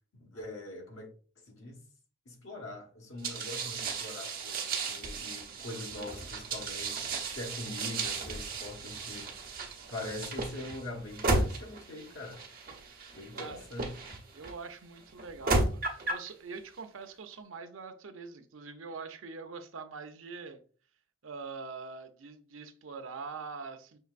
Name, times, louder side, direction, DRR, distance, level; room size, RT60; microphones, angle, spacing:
voice 1, 0.1-1.1 1.5-1.8 2.2-9.3 9.9-12.4 13.1-14.0, left 2 dB, 80° left, 1.2 m, -43 dB
sound 1, 3.2-14.5 15.2-16.3, right 3 dB, 45° right, 1.0 m, -34 dB
voice 2, 13.3-13.7 14.3-20.6 21.2-24.0, right 4 dB, 90° right, 0.6 m, -44 dB
5.6 x 3.2 x 2.4 m
head